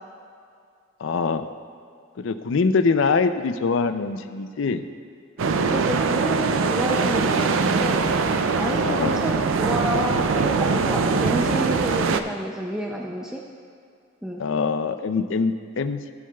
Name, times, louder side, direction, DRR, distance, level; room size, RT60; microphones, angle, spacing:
voice 1, 1.0-1.5 2.2-4.8 8.8-9.2 14.4-16.0, left 4 dB, 65° left, 10 dB, 0.4 m, -23 dB
voice 2, 5.4-8.2 8.5-13.4 14.2-14.4, equal, 5° right, -1 dB, 0.5 m, -29 dB
sound 1, 5.4-12.2, right 4 dB, 70° right, 0.4 m, -22 dB
17.0 x 6.3 x 2.3 m, 2.3 s
head